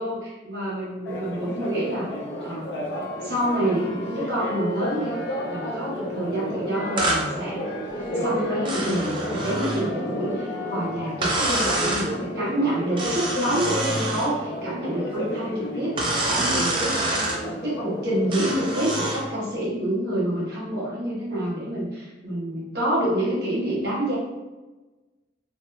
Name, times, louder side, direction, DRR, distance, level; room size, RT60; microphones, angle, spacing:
voice 1, 0.0-2.1 2.4-2.8 3.2-5.2 5.5-7.6 8.1-16.0 16.3-17.1 17.6-24.1, right 1 dB, 60° right, -7 dB, 1.0 m, -27 dB
Church bell, 1.0-19.4, equal, 75° left, 0.6 m, -32 dB
sound 1, 7.0-7.3 8.7-9.9 11.2-12.1 13.0-14.3 16.0-17.4 18.3-19.2, right 2 dB, 30° right, 0.4 m, -26 dB
2.7 x 2.2 x 2.2 m, 1.1 s
head